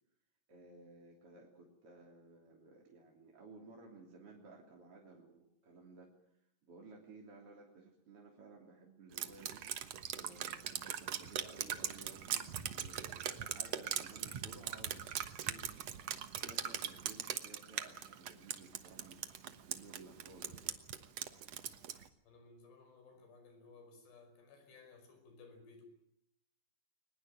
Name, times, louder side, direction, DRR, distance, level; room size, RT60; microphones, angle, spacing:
voice 1, 0.5-6.1 6.6-9.6 10.1-15.7 16.4-20.8, right 3 dB, 35° right, -1 dB, 3.6 m, -57 dB
Drip, 9.2-22.1, right 9 dB, 75° right, 1.4 m, -40 dB
voice 2, 22.3-25.8, left 4 dB, 75° left, 7 dB, 7.4 m, -59 dB
22.5 x 20.5 x 9.0 m, 0.75 s
omnidirectional pair, 4.8 m